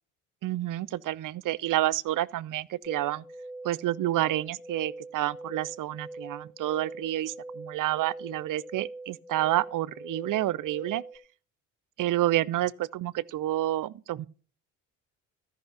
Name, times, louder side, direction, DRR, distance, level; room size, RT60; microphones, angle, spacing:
voice 1, 0.4-3.2 3.6-11.0 12.0-14.3, right 14 dB, 50° right, 0.7 m, -29 dB
sound 1, 2.8-11.2, right 2 dB, 15° right, 1.9 m, -43 dB
13.5 x 5.6 x 5.7 m
hypercardioid pair, 70°, 42 cm